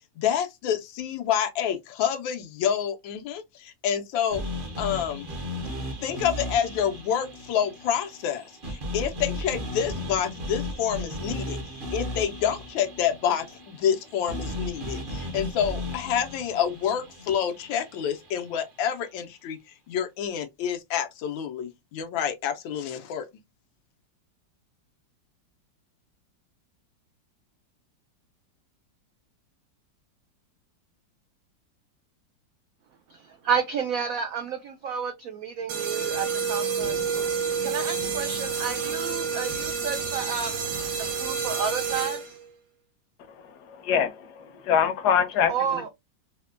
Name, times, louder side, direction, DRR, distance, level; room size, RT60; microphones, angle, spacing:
voice 1, 0.2-4.4 4.8-5.3 6.0-11.6 11.9-19.6 19.9-23.2, left 9 dB, 90° left, 1.4 m, -28 dB
sound 1, 4.3-18.5, left 1 dB, 45° right, 0.7 m, -36 dB
voice 2, 33.1-37.0 37.6-40.7 41.2-42.2 45.5-45.9, right 6 dB, 85° right, 0.7 m, -31 dB
sound 2, 35.7-42.5, right 6 dB, 65° right, 1.3 m, -29 dB
voice 3, 43.7-45.9, left 8 dB, 70° left, 1.1 m, -24 dB
4.2 x 2.2 x 2.4 m
omnidirectional pair, 2.0 m